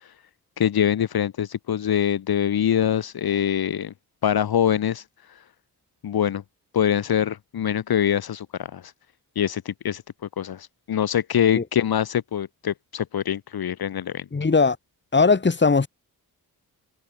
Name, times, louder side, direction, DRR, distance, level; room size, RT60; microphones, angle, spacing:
voice 1, 0.6-3.9 4.2-5.0 6.0-6.4 6.7-8.5 8.7-8.8 9.3-10.0 10.4-14.2, left 9 dB, 70° left, 1.5 m, -24 dB
voice 2, 14.3-14.8 15.1-15.9, left 4 dB, 30° left, 1.8 m, -19 dB
cardioid pair, 60°, 38 cm